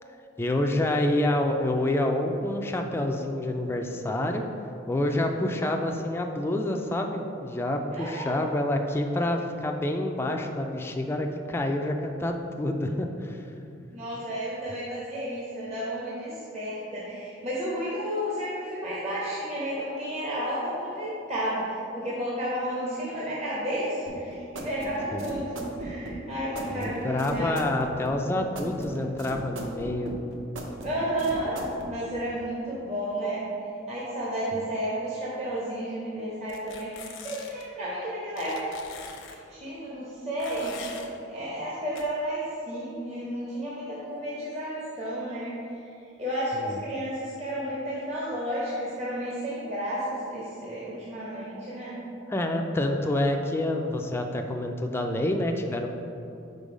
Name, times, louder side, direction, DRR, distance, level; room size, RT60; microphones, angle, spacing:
voice 1, 0.4-4.4 4.9-13.5 25.1-25.3 26.7-30.1 46.6-46.8 52.3-55.9, left 1 dB, 10° left, 3 dB, 0.3 m, -27 dB
voice 2, 7.9-8.4 13.9-27.6 30.8-31.6 31.8-33.5 33.9-38.7 39.0-41.0 41.3-45.8 46.2-52.0, equal, 35° right, -8 dB, 0.9 m, -32 dB
sound 1, 24.1-31.9, right 1 dB, 75° right, 0.7 m, -38 dB
sound 2, 36.5-37.6 38.4-39.4 40.4-41.1 42.0-42.1, left 6 dB, 80° left, 0.7 m, -43 dB
5.3 x 3.9 x 5.0 m, 2.7 s
head